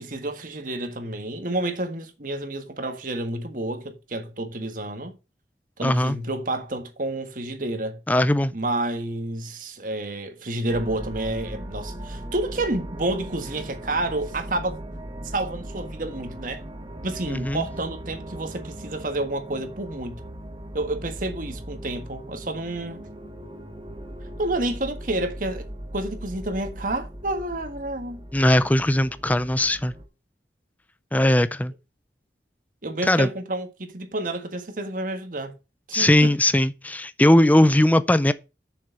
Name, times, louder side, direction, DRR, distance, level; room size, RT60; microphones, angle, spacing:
voice 1, 0.0-5.2 5.8-8.0 8.5-14.8 15.2-16.6 17.0-20.2 20.7-23.0 24.4-25.7 25.9-28.2 32.8-35.5 35.9-36.3, right 2 dB, 50° right, 1.6 m, -29 dB
voice 2, 5.8-6.2 8.1-8.5 17.3-17.7 28.3-29.9 31.1-31.7 33.0-33.3 35.9-38.3, left 1 dB, 10° left, 0.4 m, -19 dB
sound 1, 10.7-30.1, right 1 dB, 30° right, 1.2 m, -39 dB
6.8 x 6.4 x 7.0 m
head